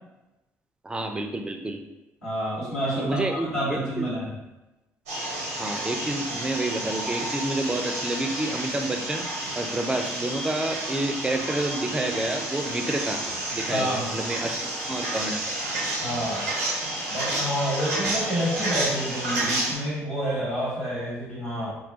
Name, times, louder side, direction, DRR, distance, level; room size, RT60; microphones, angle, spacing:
voice 1, 0.8-1.8 3.0-4.1 5.6-9.3 9.6-13.2 13.5-15.6, right 1 dB, 10° right, 5 dB, 0.3 m, -29 dB
voice 2, 2.2-4.3 13.7-14.1 16.0-16.5 17.1-21.8, equal, 85° left, -12 dB, 1.0 m, -28 dB
sound 1, 5.1-19.7, right 1 dB, 80° right, 0.6 m, -30 dB
2.2 x 2.2 x 2.6 m, 1.0 s
figure-of-eight pair, 45°, 8 cm